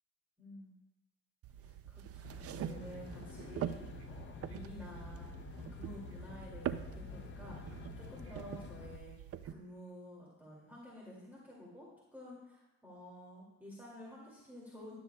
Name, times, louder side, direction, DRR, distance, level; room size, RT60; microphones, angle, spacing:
voice 1, 0.4-0.7 1.6-2.3 2.7-3.8 4.1-5.3 5.6-9.1 9.4-15.0, left 1 dB, 5° right, -6 dB, 2.3 m, -51 dB
sound 1, 1.4-9.5, right 10 dB, 50° right, 0.4 m, -44 dB
Aircraft, 2.2-9.0, left 7 dB, 40° left, 0.5 m, -49 dB
12.0 x 6.9 x 2.3 m, 0.93 s
cardioid pair, 90°, 30 cm